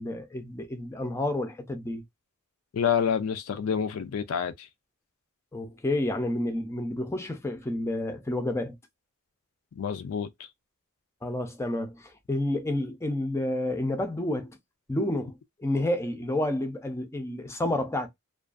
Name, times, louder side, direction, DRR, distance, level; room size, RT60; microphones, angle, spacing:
voice 1, 0.0-2.0 5.5-8.8 11.2-14.5 14.9-18.1, left 1 dB, 10° left, 0.4 m, -30 dB
voice 2, 2.7-4.7 9.8-10.3, left 7 dB, 70° left, 0.4 m, -28 dB
2.4 x 2.3 x 2.3 m
head